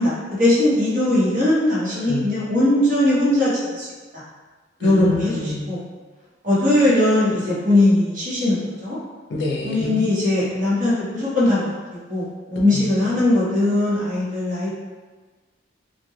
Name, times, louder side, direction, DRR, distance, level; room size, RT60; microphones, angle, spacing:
voice 1, 0.0-3.5 3.8-3.9 4.1-4.2 4.8-5.3 5.7-5.8 6.4-9.0 9.6-11.7 12.1-14.7, left 1 dB, 45° right, -8 dB, 0.9 m, -19 dB
voice 2, 1.9-2.3 4.8-5.7 9.3-10.0 12.5-12.9, left 2 dB, 65° left, -3 dB, 0.5 m, -28 dB
3.0 x 2.1 x 2.2 m, 1.3 s
head